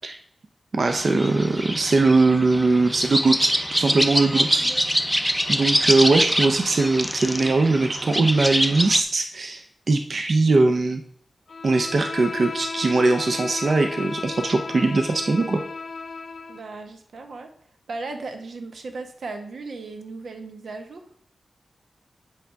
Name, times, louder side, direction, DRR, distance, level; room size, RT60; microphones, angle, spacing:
voice 1, 0.7-4.9 5.5-11.0 11.6-15.6, right 3 dB, 50° right, 5 dB, 0.5 m, -21 dB
sound 1, 0.9-9.0, equal, ahead, 0.5 m, -24 dB
voice 2, 4.5-4.8 16.5-17.5 17.9-21.0, right 3 dB, 90° right, 5 dB, 1.0 m, -36 dB
Bowed string instrument, 11.5-16.7, left 4 dB, 60° left, 0.8 m, -34 dB
8.3 x 3.5 x 5.6 m, 0.63 s
wide cardioid pair, 150°, 0 cm